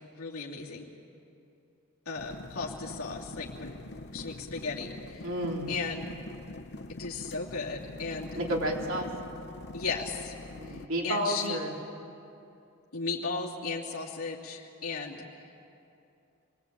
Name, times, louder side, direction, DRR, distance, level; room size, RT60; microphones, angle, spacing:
voice 1, 0.2-0.9 2.1-3.7 4.1-5.2 5.7-6.0 6.9-8.3 9.7-10.3 10.7-10.8 11.0-11.6 12.9-15.2, left 4 dB, 85° left, -4 dB, 2.8 m, -35 dB
sound 1, 2.2-10.9, left 2 dB, 50° left, 0.9 m, -43 dB
voice 2, 5.2-5.8 8.3-9.1 10.5-11.7, right 1 dB, 60° right, -1 dB, 3.8 m, -31 dB
28.0 x 21.5 x 8.8 m, 2.7 s
head